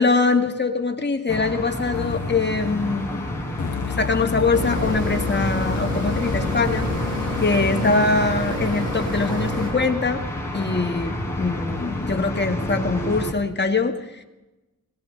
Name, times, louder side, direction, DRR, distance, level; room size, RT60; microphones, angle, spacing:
voice 1, 0.0-3.2 3.9-6.9 7.4-10.2 10.5-14.2, left 3 dB, 35° left, 5 dB, 1.6 m, -23 dB
sound 1, 1.3-13.3, equal, 10° left, 3.9 m, -30 dB
sound 2, 1.9-8.3, left 8 dB, 75° left, 0.7 m, -31 dB
sound 3, 4.5-9.7, right 1 dB, 80° right, 5.0 m, -28 dB
20.5 x 17.5 x 3.2 m, 1.1 s
cardioid pair, 60°, 30 cm